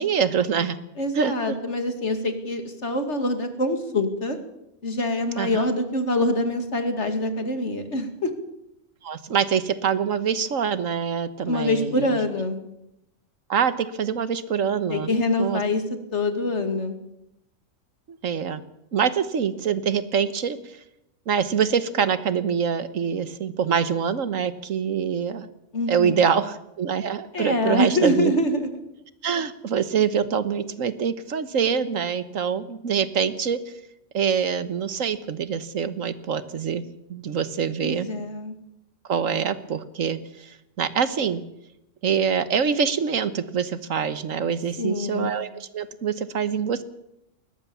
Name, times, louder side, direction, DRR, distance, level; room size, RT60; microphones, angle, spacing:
voice 1, 0.0-0.8 1.1-1.6 5.4-5.6 9.0-12.1 13.5-15.6 18.1-18.6 18.9-20.8 21.3-25.5 25.9-28.3 29.2-33.7 34.1-36.8 37.1-38.1 39.1-41.4 42.0-46.8, right 7 dB, 75° right, 13 dB, 1.5 m, -25 dB
voice 2, 1.0-4.4 4.8-8.3 11.5-12.6 14.9-15.8 16.1-17.0 25.7-26.3 27.3-28.8 37.8-38.6 44.8-45.3, left 1 dB, 60° left, 7 dB, 2.7 m, -25 dB
21.0 x 18.0 x 7.1 m, 0.85 s
omnidirectional pair, 1.4 m